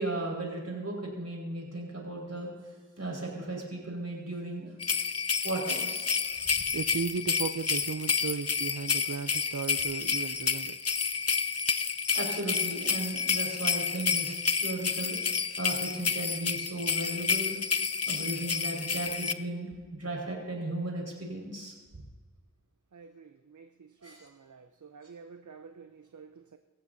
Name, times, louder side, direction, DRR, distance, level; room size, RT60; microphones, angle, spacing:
voice 1, 0.0-2.5 3.0-4.7 5.4-6.1 6.4-6.5 12.2-15.2 15.6-17.6 18.1-19.7 20.0-21.7 24.0-24.2, right 2 dB, 55° right, -2 dB, 5.3 m, -35 dB
sound 1, 4.8-19.3, left 6 dB, 55° left, 0.6 m, -30 dB
voice 2, 6.7-10.8 22.9-26.6, right 6 dB, 75° right, 7 dB, 0.7 m, -37 dB
25.0 x 14.5 x 2.8 m, 1.5 s
wide cardioid pair, 55°, 30 cm